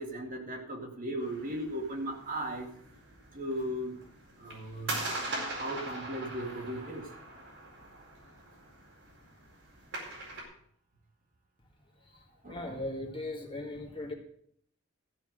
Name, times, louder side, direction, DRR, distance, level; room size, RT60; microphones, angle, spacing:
voice 1, 0.0-2.7 3.3-4.0 4.4-5.0 5.5-7.1 12.4-12.8, right 1 dB, 40° right, 2 dB, 2.1 m, -37 dB
sound 1, 1.2-10.4, right 2 dB, 55° right, 4.5 m, -42 dB
voice 2, 12.4-14.1, left 2 dB, 25° left, 1 dB, 1.9 m, -38 dB
14.0 x 6.0 x 7.6 m, 0.66 s
head